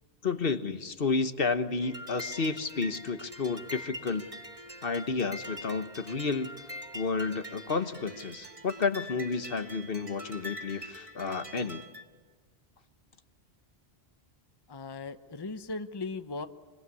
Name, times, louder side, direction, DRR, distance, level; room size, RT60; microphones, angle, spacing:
voice 1, 0.2-4.2 4.8-6.5 6.9-11.8, left 4 dB, 60° left, 10 dB, 1.4 m, -31 dB
sound 1, 1.8-12.0, equal, 30° right, 1.5 m, -44 dB
voice 2, 14.7-16.5, left 3 dB, 25° left, 10 dB, 0.9 m, -38 dB
25.0 x 24.5 x 9.6 m, 1.4 s
omnidirectional pair, 1.1 m